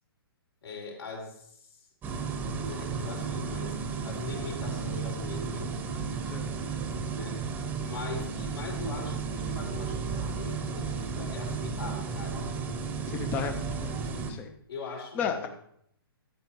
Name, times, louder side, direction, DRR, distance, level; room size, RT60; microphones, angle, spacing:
voice 1, 0.6-1.9 2.1-3.8 4.0-5.8 7.1-7.5 7.8-12.5 14.7-15.5, left 4 dB, 80° left, -2 dB, 4.3 m, -41 dB
sound 1, 2.0-14.3, right 5 dB, 10° right, 0.8 m, -33 dB
voice 2, 13.1-14.0 14.3-14.5 15.2-15.5, left 7 dB, 10° left, 6 dB, 0.4 m, -33 dB
13.0 x 8.8 x 3.1 m, 0.71 s
hypercardioid pair, 150°, 13 cm